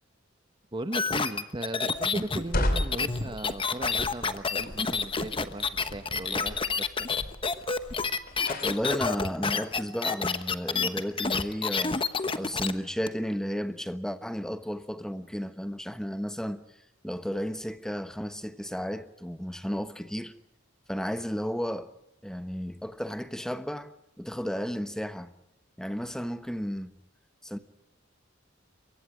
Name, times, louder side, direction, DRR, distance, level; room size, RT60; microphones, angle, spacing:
voice 1, 0.7-7.1, right 1 dB, 25° right, 1.0 m, -37 dB
sound 1, 0.9-12.7 13.1-13.2, left 5 dB, 25° left, 1.1 m, -29 dB
sound 2, 2.2-8.9, left 1 dB, 50° left, 2.8 m, -35 dB
voice 2, 8.6-12.0 12.3-16.6 17.0-20.3 20.9-21.9 22.2-23.9 24.2-25.3 25.8-26.9 27.4-27.6, equal, 5° left, 1.1 m, -33 dB
28.0 x 23.5 x 5.0 m
head